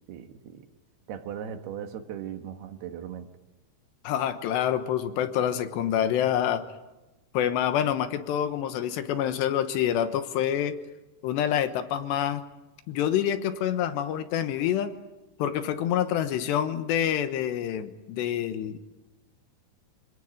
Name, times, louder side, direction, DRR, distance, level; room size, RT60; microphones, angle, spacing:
voice 1, 0.1-0.7 1.1-3.3, right 9 dB, 65° right, 7 dB, 3.1 m, -38 dB
voice 2, 4.0-6.6 7.3-10.8 11.2-12.4 12.9-14.9 15.4-18.8, left 10 dB, 75° left, 10 dB, 3.1 m, -27 dB
26.0 x 18.5 x 9.2 m, 1.1 s
omnidirectional pair, 5.5 m